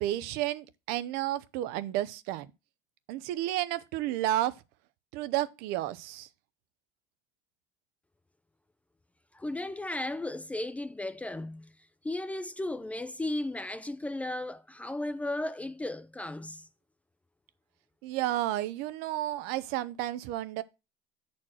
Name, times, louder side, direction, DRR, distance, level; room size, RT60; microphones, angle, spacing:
voice 1, 0.0-2.5 3.1-4.5 5.1-6.3 18.0-20.6, right 14 dB, 70° right, 0.6 m, -31 dB
voice 2, 9.3-11.7 12.0-16.7, left 1 dB, 10° left, 0.4 m, -35 dB
7.5 x 4.4 x 6.2 m
cardioid pair, 140°, 17 cm